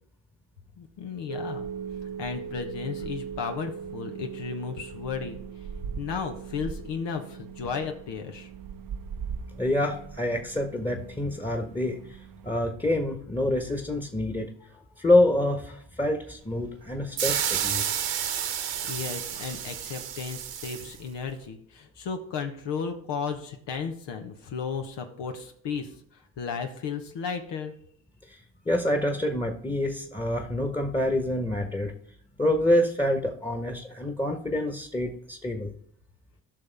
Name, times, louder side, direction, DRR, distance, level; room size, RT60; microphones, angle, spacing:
voice 1, 0.8-1.7 2.2-5.4 6.0-8.5 18.8-25.9 26.4-27.7, left 6 dB, 70° left, 4 dB, 1.1 m, -34 dB
sound 1, 1.3-12.5, right 7 dB, 50° right, 0.7 m, -39 dB
voice 2, 9.6-12.2 12.4-14.5 15.0-17.9 18.8-18.9 28.3-28.4 28.6-31.9 32.4-35.7, left 1 dB, 10° left, 4 dB, 1.4 m, -26 dB
sound 2, 17.2-21.0, right 9 dB, 70° right, 1.3 m, -30 dB
13.5 x 5.8 x 3.5 m, 0.64 s
hypercardioid pair, 50°, 44 cm